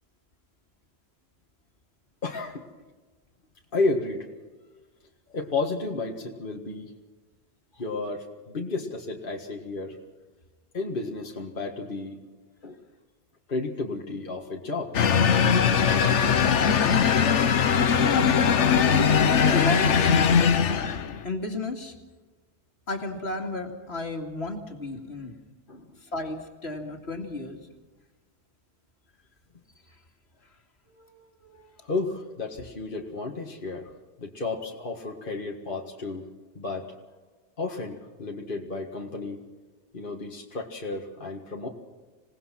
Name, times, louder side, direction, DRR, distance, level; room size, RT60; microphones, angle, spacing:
voice 1, 2.2-2.6 3.7-4.3 5.3-6.9 7.7-10.0 10.7-12.2 12.6-12.8 13.5-14.9 25.7-25.9 31.8-33.9 34.2-36.3 36.6-36.9 37.6-39.4 39.9-41.7, left 3 dB, 45° left, 0 dB, 1.9 m, -32 dB
sound 1, 14.9-21.2, left 7 dB, 85° left, 1.3 m, -20 dB
voice 2, 17.9-18.3 18.7-20.5 21.2-21.9 22.9-25.3 26.1-27.7 30.9-31.1 31.4-31.7, left 2 dB, 65° left, 3 dB, 2.6 m, -33 dB
27.0 x 18.5 x 5.9 m, 1.3 s
omnidirectional pair, 1.2 m